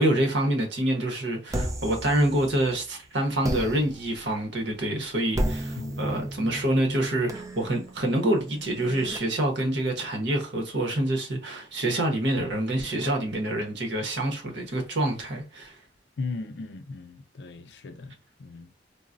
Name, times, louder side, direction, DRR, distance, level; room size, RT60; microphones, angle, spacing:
voice 1, 0.0-15.8, right 1 dB, 80° right, 1.0 m, -26 dB
sound 1, 1.5-2.9 3.4-9.2, right 1 dB, 20° right, 0.4 m, -34 dB
voice 2, 5.8-6.2 16.2-18.7, left 3 dB, 75° left, 0.5 m, -37 dB
3.8 x 2.1 x 2.5 m
head